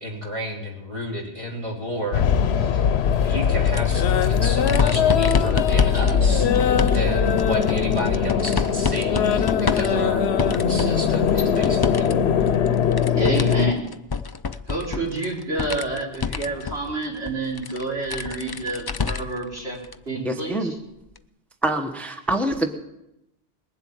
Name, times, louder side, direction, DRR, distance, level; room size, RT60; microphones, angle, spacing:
voice 1, 0.0-12.2, equal, 30° right, -2 dB, 3.2 m, -32 dB
sound 1, 2.1-13.7, left 7 dB, 90° left, 1.0 m, -21 dB
sound 2, 3.6-12.1 12.4-19.4 19.8-19.9 21.2-21.3, left 5 dB, 35° left, 0.4 m, -29 dB
voice 2, 13.1-13.9 14.7-19.8 20.1-20.7, right 2 dB, 90° right, -4 dB, 5.3 m, -28 dB
voice 3, 20.2-20.7 21.6-22.7, right 1 dB, ahead, 5 dB, 1.0 m, -25 dB
20.5 x 7.9 x 8.6 m, 0.88 s
omnidirectional pair, 1.0 m